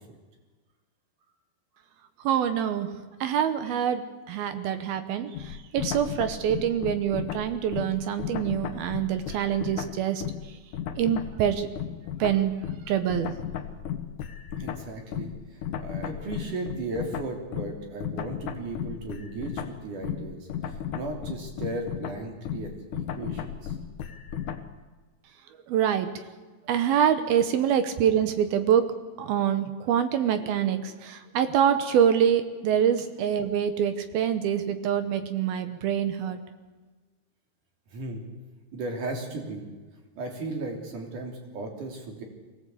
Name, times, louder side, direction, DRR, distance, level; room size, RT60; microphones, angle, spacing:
voice 1, 2.2-2.9 3.2-10.3 11.0-11.7 12.2-12.5 12.9-13.3 25.7-26.2 26.7-28.8 29.2-36.4, right 9 dB, 70° right, 10 dB, 2.8 m, -25 dB
sound 1, 5.3-10.5 10.7-24.7, left 9 dB, 65° left, 2.2 m, -35 dB
voice 2, 14.6-23.8 37.9-38.2 38.7-39.6 40.2-42.2, right 2 dB, 50° right, 3 dB, 4.5 m, -36 dB
22.5 x 18.0 x 8.5 m, 1.3 s
omnidirectional pair, 4.9 m